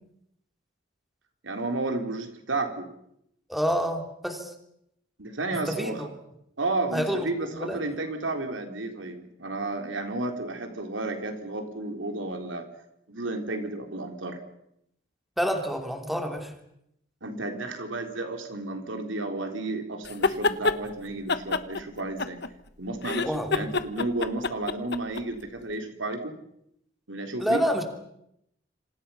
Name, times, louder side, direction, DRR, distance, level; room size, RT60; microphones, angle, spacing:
voice 1, 1.4-2.9 5.2-6.1 6.6-12.7 13.1-14.4 17.2-22.4 22.8-26.4 27.1-27.6, right 2 dB, 85° right, 5 dB, 3.8 m, -32 dB
voice 2, 3.5-4.5 5.7-6.1 6.9-7.8 15.4-16.5 23.2-23.6 27.4-27.8, equal, ahead, 4 dB, 2.9 m, -28 dB
sound 1, 20.1-20.8 21.3-22.7 23.0-25.2, left 3 dB, 60° left, 1.2 m, -26 dB
27.5 x 27.0 x 5.8 m, 0.78 s
head